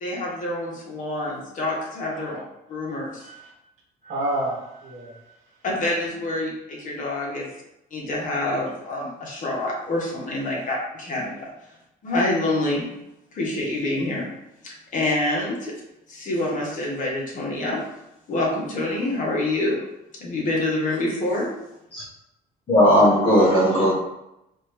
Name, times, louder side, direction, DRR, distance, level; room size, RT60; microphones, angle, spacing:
voice 1, 0.0-2.4 2.7-3.2 5.6-7.5 7.9-11.5 12.0-12.8 13.3-14.3 14.6-15.7 16.1-17.8 18.3-19.9 20.2-21.5, left 2 dB, 50° left, -3 dB, 1.4 m, -26 dB
voice 2, 3.2-3.5 4.0-5.4 7.4-7.5, right 1 dB, 45° right, -4 dB, 1.4 m, -30 dB
voice 3, 22.7-23.9, equal, 35° left, -9 dB, 1.4 m, -16 dB
4.2 x 3.1 x 3.1 m, 0.87 s
cardioid pair, 110°, 17 cm